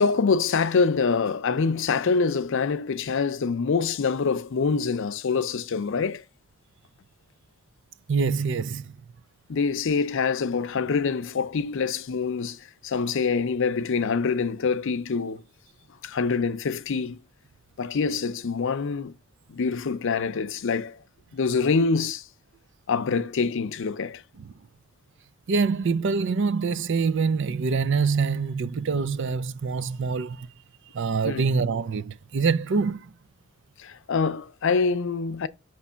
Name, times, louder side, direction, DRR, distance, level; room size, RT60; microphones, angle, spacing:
voice 1, 0.0-6.2 9.5-15.4 16.0-17.2 17.8-19.1 19.5-21.0 21.3-22.2 22.9-24.2 31.2-31.4 33.8-35.5, left 5 dB, 65° left, 0.5 m, -25 dB
voice 2, 8.1-8.8 25.5-30.5 30.9-33.0, right 5 dB, 65° right, 0.5 m, -25 dB
6.0 x 3.1 x 5.5 m
head